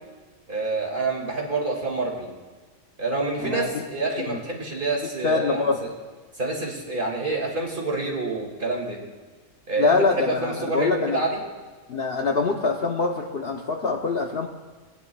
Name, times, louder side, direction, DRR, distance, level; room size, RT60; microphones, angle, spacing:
voice 1, 0.5-2.3 3.0-5.9 6.4-9.0 9.7-11.4, right 3 dB, 40° right, -1 dB, 2.2 m, -27 dB
voice 2, 3.4-3.8 4.1-4.4 5.2-5.9 9.8-11.2 11.9-14.5, left 4 dB, 55° left, 2 dB, 0.9 m, -24 dB
20.0 x 10.0 x 2.3 m, 1.4 s
omnidirectional pair, 1.4 m